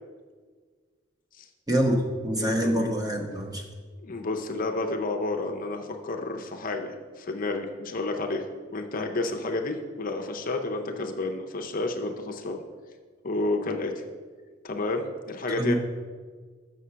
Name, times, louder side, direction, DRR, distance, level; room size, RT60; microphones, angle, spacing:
voice 1, 1.7-3.6 15.6-15.7, equal, 20° right, 1 dB, 1.0 m, -25 dB
voice 2, 2.4-2.9 4.0-12.6 13.2-13.9 14.6-15.7, left 2 dB, 45° left, 4 dB, 0.6 m, -31 dB
6.7 x 6.3 x 5.6 m, 1.6 s
head